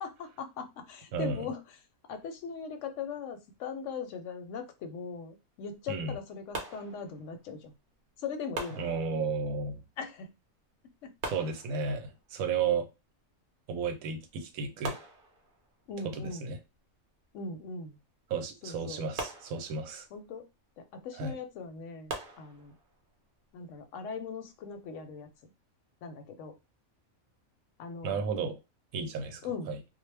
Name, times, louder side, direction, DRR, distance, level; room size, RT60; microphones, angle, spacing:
voice 1, 0.0-1.6 2.1-7.7 8.2-8.9 10.0-10.3 11.0-11.1 15.9-16.5 17.3-18.0 18.6-19.0 20.1-20.5 20.8-22.7 23.5-25.5 26.0-26.5 27.8-28.2 29.4-29.7, left 5 dB, 70° left, 7 dB, 0.8 m, -40 dB
voice 2, 1.1-1.5 5.9-6.2 8.8-9.8 11.2-12.9 13.7-15.0 16.0-16.6 18.3-20.0 21.2-21.4 28.0-28.6 28.9-29.4 29.7-29.8, right 5 dB, 85° right, 7 dB, 1.0 m, -33 dB
sound 1, 6.5-7.5 8.5-9.6 11.2-12.2 13.9-14.0 14.3-14.4 14.8-15.9 19.2-20.2 22.1-23.0, right 2 dB, 55° right, 0.6 m, -41 dB
2.3 x 2.0 x 3.2 m, 0.25 s
omnidirectional pair, 1.5 m